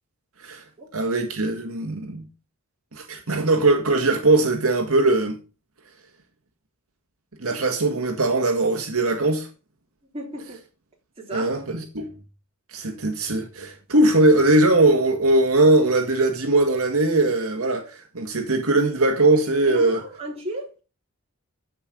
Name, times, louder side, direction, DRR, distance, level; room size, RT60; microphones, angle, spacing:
voice 1, 0.9-2.2 2.9-5.4 7.4-9.5 11.3-12.1 12.7-20.0, right 2 dB, 75° right, 1.9 m, -20 dB
voice 2, 10.1-10.6 11.2-11.5 19.7-20.8, right 1 dB, 25° right, 3.9 m, -34 dB
14.0 x 5.6 x 5.3 m
head